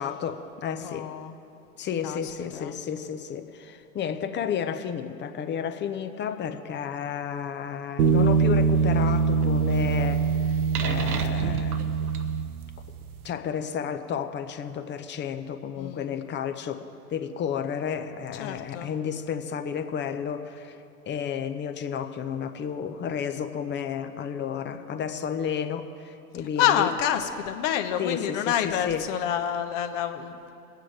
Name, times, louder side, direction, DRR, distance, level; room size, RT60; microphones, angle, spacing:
voice 1, 0.0-1.1 1.8-12.1 13.2-20.8 21.1-26.9 28.0-29.1, left 7 dB, 25° left, 9 dB, 0.8 m, -32 dB
voice 2, 0.8-1.4 2.0-2.2 2.5-2.8 15.7-16.0 18.4-18.9 26.6-30.5, left 10 dB, 50° left, 7 dB, 1.2 m, -28 dB
sound 1, 8.0-12.9, right 5 dB, 70° right, 1.1 m, -23 dB
22.5 x 9.2 x 4.7 m, 2.6 s
hypercardioid pair, 95°, 46 cm